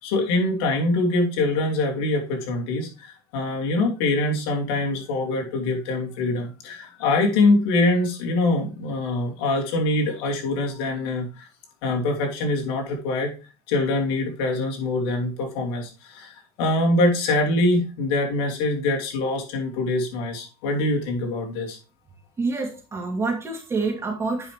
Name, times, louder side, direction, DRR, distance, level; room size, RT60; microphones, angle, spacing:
voice 1, 0.0-11.5 11.8-13.3 13.7-21.8, left 2 dB, 75° left, 1 dB, 2.8 m, -24 dB
voice 2, 22.4-24.5, right 3 dB, 20° right, 1 dB, 2.6 m, -27 dB
9.7 x 5.6 x 3.4 m, 0.33 s
supercardioid pair, 130°, 13 cm